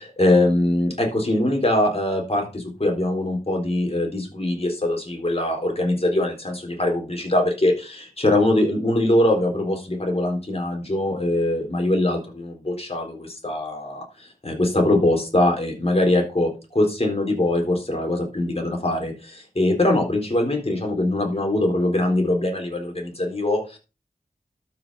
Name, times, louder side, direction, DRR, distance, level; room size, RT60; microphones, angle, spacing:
voice 1, 0.0-14.1 14.4-23.8, left 1 dB, 40° left, 2 dB, 4.0 m, -22 dB
12.5 x 5.9 x 5.5 m, 0.31 s
wide cardioid pair, 60°, 16 cm